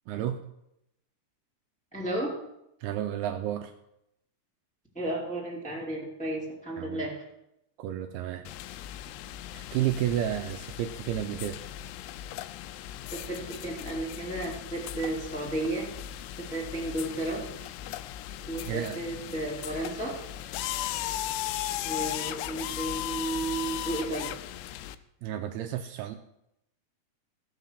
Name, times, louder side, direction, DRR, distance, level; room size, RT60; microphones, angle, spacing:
voice 1, 0.1-0.5 2.8-3.7 6.8-7.0 7.8-8.5 9.5-11.6 18.7-19.0 25.2-26.2, right 11 dB, 80° right, 6 dB, 2.4 m, -31 dB
voice 2, 1.9-2.3 4.9-7.2 13.1-15.8 16.5-17.4 18.5-20.1 21.8-24.3, right 2 dB, ahead, -4 dB, 1.9 m, -33 dB
sound 1, 8.5-25.0, left 13 dB, 85° left, 2.7 m, -37 dB
15.5 x 5.8 x 6.6 m, 0.82 s
omnidirectional pair, 4.9 m